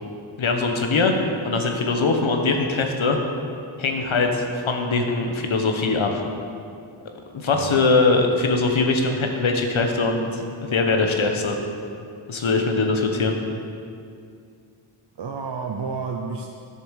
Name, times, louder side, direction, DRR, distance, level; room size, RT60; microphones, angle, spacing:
voice 1, 0.4-1.1 1.4-3.2 3.8-6.2 7.3-10.4 10.7-11.6 12.3-13.3, left 3 dB, 75° left, 3 dB, 1.3 m, -21 dB
voice 2, 15.2-16.5, right 5 dB, 60° right, 1 dB, 0.8 m, -30 dB
10.5 x 7.1 x 6.5 m, 2.4 s
wide cardioid pair, 125°, 48 cm